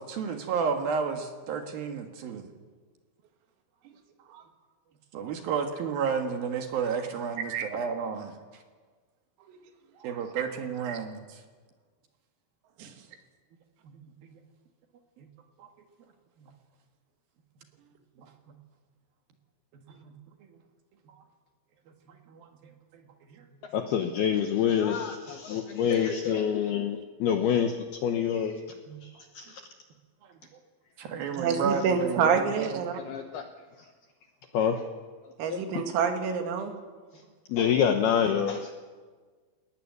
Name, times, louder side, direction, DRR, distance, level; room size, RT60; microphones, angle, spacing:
voice 1, 0.0-2.5 5.1-8.3 10.0-11.2 13.8-14.0 14.3-14.4 15.2-15.3 15.6-15.7 16.4-16.5 20.0-20.1 22.3-22.5 28.9-29.0 31.0-32.7, right 6 dB, 60° right, 5 dB, 2.8 m, -31 dB
voice 2, 23.7-28.6 29.0-29.6 33.0-33.4 33.8-33.9 34.5-34.8 35.2-35.8 37.5-38.7, left 8 dB, 75° left, 5 dB, 2.3 m, -27 dB
voice 3, 31.4-33.0 35.4-36.7, right 6 dB, 85° right, 5 dB, 4.8 m, -28 dB
22.0 x 19.5 x 9.5 m, 1.5 s
omnidirectional pair, 5.9 m